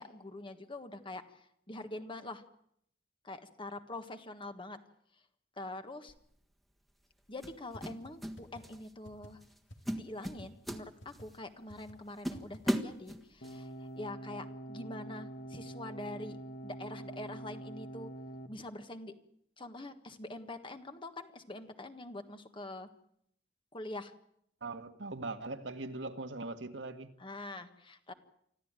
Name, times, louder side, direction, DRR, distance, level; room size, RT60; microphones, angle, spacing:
voice 1, 0.0-2.4 3.2-4.8 5.6-6.1 7.3-9.4 9.9-13.7 14.0-16.4 16.6-18.1 18.5-19.1 19.6-22.9 23.7-24.1 27.2-28.1, left 2 dB, 30° left, 8 dB, 1.5 m, -44 dB
sound 1, 6.1-6.3 7.4-8.4 8.6-8.9 9.4-9.6 9.9-11.4 11.8-11.9 12.2-13.6, equal, ahead, 1.5 m, -36 dB
sound 2, 7.7-7.8 8.1-8.2 8.4-8.6 9.0-9.3 9.7-9.9 10.4-10.5 10.7-10.8 11.0-11.3 11.7-11.9 12.3-12.6, equal, 80° left, 2.3 m, -50 dB
sound 3, 13.4-18.5, right 1 dB, 55° left, 1.5 m, -45 dB
voice 2, 24.6-27.1, right 2 dB, 80° right, 6 dB, 1.8 m, -40 dB
25.0 x 14.5 x 9.0 m, 0.71 s
head